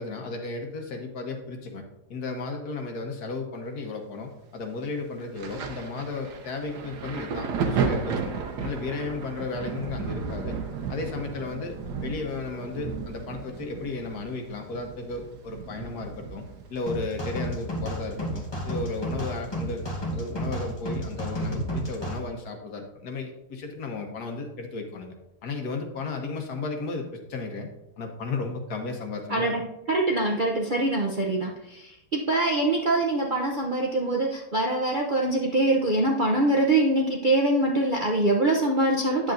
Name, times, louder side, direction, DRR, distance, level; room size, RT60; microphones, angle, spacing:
voice 1, 0.0-10.6 10.9-16.4 16.7-19.8 20.1-25.1 25.4-27.7 28.0-29.5, left 3 dB, 65° left, 3 dB, 1.6 m, -34 dB
Thunder, 5.4-18.7 19.0-20.3 21.1-21.3, right 5 dB, 75° right, 1.5 m, -34 dB
sound 1, 16.9-22.2, equal, 20° left, 1.0 m, -32 dB
voice 2, 29.3-29.6 29.9-39.3, right 2 dB, 45° right, -1 dB, 0.6 m, -24 dB
9.7 x 7.6 x 2.6 m, 0.90 s
omnidirectional pair, 1.8 m